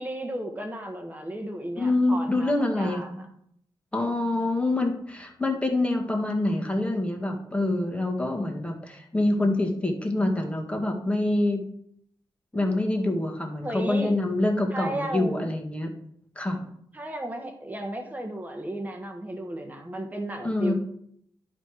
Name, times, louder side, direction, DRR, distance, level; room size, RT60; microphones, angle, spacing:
voice 1, 0.0-3.3 13.6-14.1 14.7-15.5 16.9-20.7, right 1 dB, 15° right, 4 dB, 1.4 m, -34 dB
voice 2, 1.8-3.0 3.9-11.6 12.5-15.9 16.3-16.6 20.4-20.7, left 2 dB, 10° left, 1 dB, 1.7 m, -26 dB
11.0 x 4.2 x 4.8 m, 0.68 s
wide cardioid pair, 95°, 10 cm